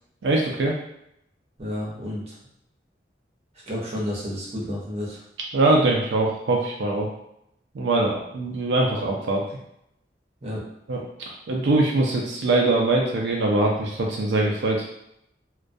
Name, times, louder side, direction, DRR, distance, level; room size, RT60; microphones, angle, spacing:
voice 1, 0.2-0.8 5.5-7.1 7.7-9.4 10.9-11.0 11.5-14.9, right 2 dB, 85° right, -1 dB, 0.4 m, -22 dB
voice 2, 1.6-2.4 3.7-5.2 10.4-10.6, left 1 dB, 35° right, -5 dB, 0.7 m, -31 dB
2.2 x 2.2 x 2.5 m, 0.77 s
head